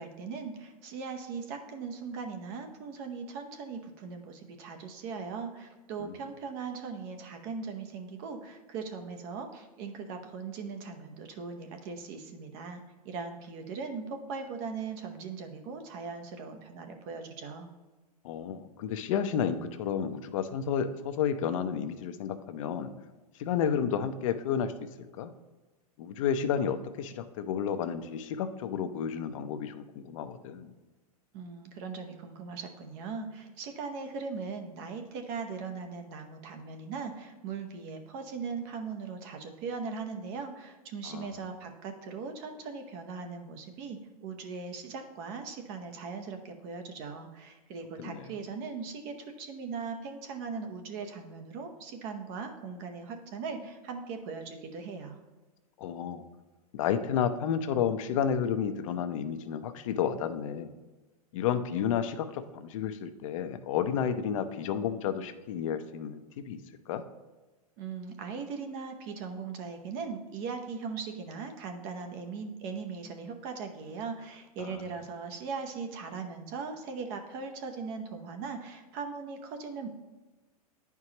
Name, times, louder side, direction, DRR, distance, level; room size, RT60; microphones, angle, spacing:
voice 1, 0.0-17.7 31.3-55.2 67.8-79.9, right 5 dB, 40° right, 5 dB, 0.9 m, -39 dB
voice 2, 18.2-22.9 23.4-25.3 26.0-30.7 41.0-41.3 48.0-48.3 55.8-56.2 56.7-60.7 61.3-66.6 66.9-67.1 74.7-74.8, left 8 dB, 55° left, 9 dB, 0.6 m, -31 dB
9.7 x 4.7 x 2.9 m, 1.2 s
hypercardioid pair, 140°, 20 cm